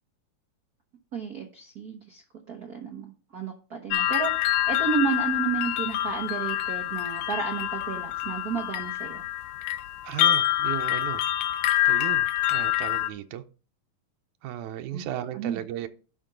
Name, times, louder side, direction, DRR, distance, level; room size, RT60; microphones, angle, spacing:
voice 1, 1.1-2.2 2.5-9.2 14.9-15.1 15.3-15.6, right 6 dB, 65° right, 0.9 m, -32 dB
sound 1, 3.9-13.1, left 14 dB, 85° left, 1.4 m, -26 dB
voice 2, 10.0-11.2 11.9-13.4 14.4-15.9, right 12 dB, 90° right, 2.1 m, -35 dB
11.0 x 5.2 x 3.8 m
omnidirectional pair, 3.3 m